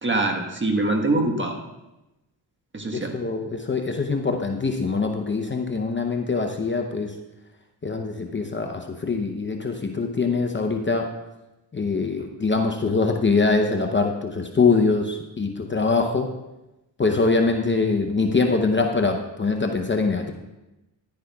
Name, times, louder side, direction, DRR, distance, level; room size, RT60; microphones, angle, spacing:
voice 1, 0.0-1.6 2.7-3.1, right 2 dB, 25° right, 3 dB, 1.3 m, -24 dB
voice 2, 2.9-7.1 7.8-11.1 11.7-16.3 17.0-20.3, left 4 dB, 25° left, 4 dB, 0.7 m, -23 dB
11.0 x 10.0 x 2.3 m, 0.98 s
cardioid pair, 65°, 45 cm